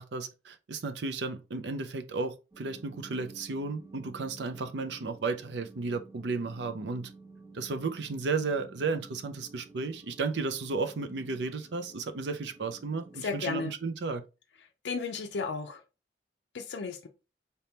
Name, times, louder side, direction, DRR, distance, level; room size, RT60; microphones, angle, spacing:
voice 1, 0.0-7.1 7.5-14.2, right 4 dB, 75° right, 0.5 m, -33 dB
sound 1, 2.5-13.7, right 3 dB, 15° right, 0.5 m, -52 dB
voice 2, 13.2-13.7 14.8-15.8 16.5-17.1, left 4 dB, 75° left, 0.4 m, -34 dB
4.2 x 3.4 x 2.8 m
head